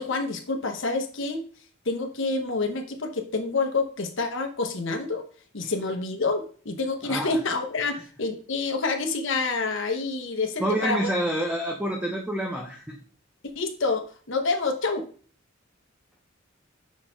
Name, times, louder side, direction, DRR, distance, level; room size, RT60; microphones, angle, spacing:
voice 1, 0.0-1.4 1.9-5.2 5.5-11.0 13.5-15.1, left 3 dB, 65° left, 5 dB, 1.0 m, -28 dB
voice 2, 7.0-7.4 10.6-13.0, right 1 dB, 5° right, 1 dB, 0.7 m, -28 dB
6.2 x 4.0 x 3.9 m, 0.42 s
head